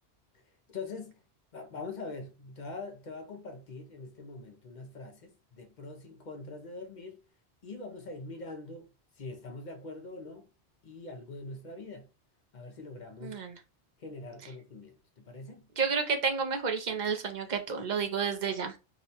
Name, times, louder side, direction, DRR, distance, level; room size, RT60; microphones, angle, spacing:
voice 1, 0.7-1.2 1.5-7.2 7.6-10.5 10.8-12.1 12.5-13.4 14.0-15.7, left 3 dB, 50° left, 0.7 m, -43 dB
voice 2, 13.2-13.6 15.8-18.8, right 5 dB, 50° right, 0.7 m, -30 dB
2.9 x 2.3 x 4.0 m
omnidirectional pair, 1.1 m